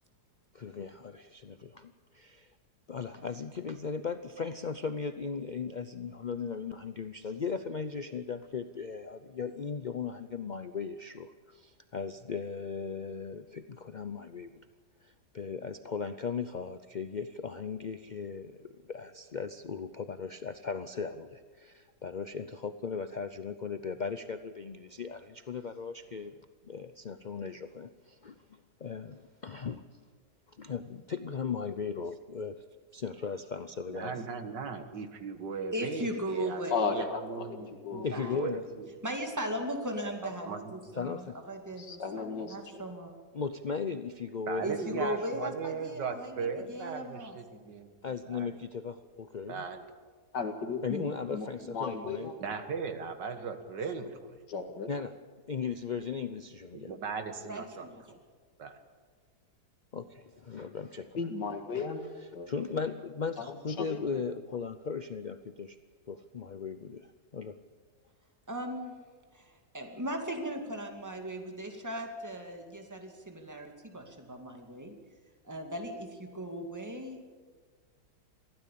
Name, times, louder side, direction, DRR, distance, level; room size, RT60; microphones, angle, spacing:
voice 1, 0.5-2.5 2.9-14.6 15.0-26.4 26.6-30.0 30.5-32.6 32.9-34.2 38.0-38.6 40.9-41.4 43.3-45.1 48.0-49.6 50.8-52.3 54.9-55.1 55.5-56.9 59.9-61.2 61.7-61.9 62.5-65.8 66.1-67.6, left 5 dB, 60° left, 10 dB, 0.4 m, -37 dB
voice 2, 33.9-38.0 38.3-39.0 40.2-40.9 44.5-48.5 49.5-49.8 52.4-54.4 56.7-58.2 58.6-58.8, right 5 dB, 85° right, 8 dB, 2.2 m, -38 dB
voice 3, 35.7-36.8 38.1-38.3 39.0-43.2 44.6-47.4 57.5-58.0 68.5-69.0 69.3-74.9 75.4-77.2, equal, 10° right, 3 dB, 2.3 m, -38 dB
voice 4, 36.7-37.6 37.8-38.4 41.8-42.8 50.3-52.3 54.5-54.9 61.2-62.0 62.3-62.5 63.4-64.2, left 5 dB, 80° left, 5 dB, 2.4 m, -35 dB
23.0 x 16.0 x 8.5 m, 1.5 s
omnidirectional pair, 1.8 m